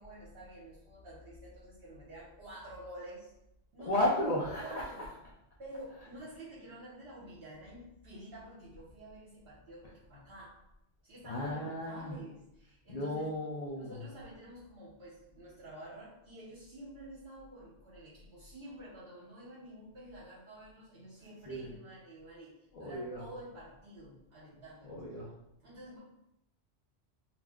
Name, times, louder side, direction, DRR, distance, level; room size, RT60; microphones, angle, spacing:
voice 1, 0.0-3.3 3.7-4.0 4.6-5.1 5.6-10.6 11.0-13.3 13.8-22.5 22.8-25.0 25.6-26.0, right 1 dB, 60° right, -8 dB, 1.0 m, -49 dB
voice 2, 3.8-4.9 11.2-12.2 12.9-14.0 21.5-21.7 22.7-23.3 24.9-25.3, left 1 dB, 60° left, -6 dB, 0.4 m, -34 dB
2.4 x 2.1 x 3.4 m, 0.85 s
omnidirectional pair, 1.2 m